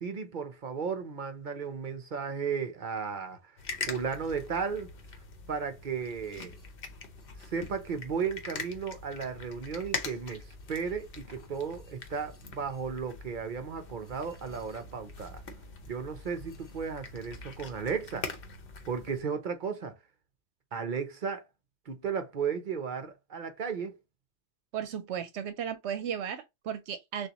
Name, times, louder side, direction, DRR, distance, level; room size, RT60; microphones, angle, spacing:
voice 1, 0.0-3.4 3.8-4.9 5.5-6.5 7.4-15.4 15.9-18.3 18.9-20.0 20.7-21.5 21.9-24.0, right 6 dB, 50° right, 0.7 m, -34 dB
sound 1, 3.6-19.2, left 4 dB, 60° left, 0.9 m, -43 dB
voice 2, 24.7-27.3, right 8 dB, 80° right, 0.9 m, -35 dB
6.4 x 2.4 x 2.9 m
omnidirectional pair, 1.2 m